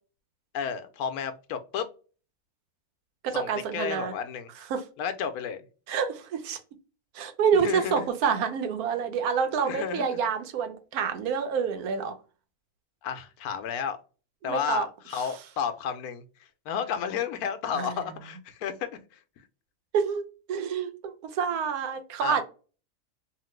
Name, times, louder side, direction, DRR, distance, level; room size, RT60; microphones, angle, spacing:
voice 1, 0.5-1.9 3.3-4.5 5.0-5.6 7.5-8.1 9.6-10.2 13.0-14.0 14.4-16.2 16.7-18.9 22.2-22.4, left 7 dB, 80° left, 1.1 m, -32 dB
voice 2, 3.2-4.1 4.7-4.8 5.9-6.6 7.1-12.1 14.4-14.9 15.1-15.2 17.7-18.0 19.9-20.2 20.5-22.4, right 6 dB, 80° right, 1.1 m, -27 dB
2.9 x 2.5 x 3.1 m
omnidirectional pair, 1.6 m